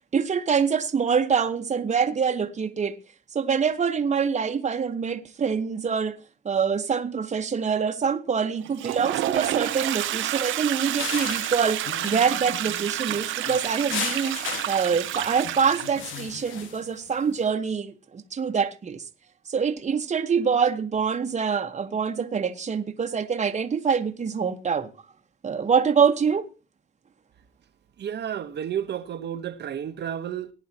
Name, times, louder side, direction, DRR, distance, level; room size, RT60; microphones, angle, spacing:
voice 1, 0.1-3.0 3.3-6.2 6.4-14.4 14.7-19.0 19.5-24.9 25.4-26.5, right 6 dB, 35° right, 1.3 m, -25 dB
Toilet flush, 8.6-16.3, right 13 dB, 80° right, 0.9 m, -29 dB
sound 1, 11.0-17.3, left 7 dB, 85° left, 1.7 m, -36 dB
voice 2, 28.0-30.5, right 9 dB, 60° right, 1.2 m, -31 dB
18.0 x 10.5 x 2.9 m
cardioid pair, 90°, 20 cm